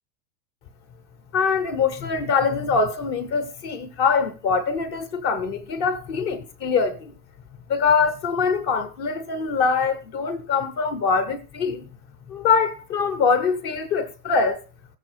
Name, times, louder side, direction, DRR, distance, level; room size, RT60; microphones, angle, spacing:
voice 1, 1.3-7.1 7.7-11.8 12.3-14.6, left 5 dB, 15° left, 0.5 m, -23 dB
15.5 x 6.8 x 6.3 m
supercardioid pair, 175°, 49 cm